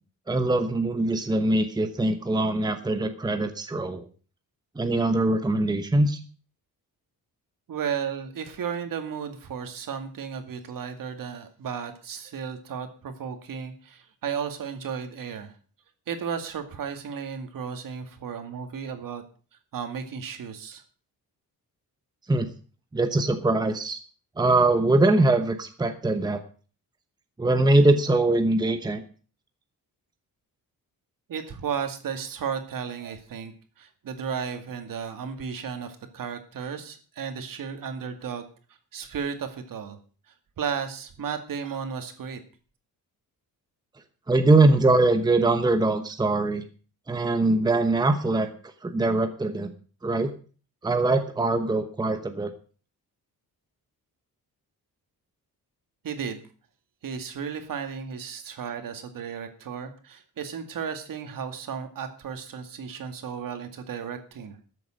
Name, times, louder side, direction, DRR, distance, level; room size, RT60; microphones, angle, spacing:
voice 1, 0.3-4.1 4.8-6.2 22.3-22.5 22.9-24.0 24.4-26.4 27.4-29.0 44.3-46.6 47.1-48.5 48.8-49.7 50.0-50.3 50.8-52.5, right 2 dB, 10° right, 7 dB, 1.0 m, -22 dB
voice 2, 7.7-15.5 16.1-19.2 19.7-20.8 31.3-33.5 33.8-38.5 38.9-40.0 40.6-42.4 56.0-56.5 57.0-64.6, right 7 dB, 65° right, 7 dB, 2.3 m, -34 dB
13.5 x 7.8 x 6.4 m, 0.40 s
wide cardioid pair, 160°, 36 cm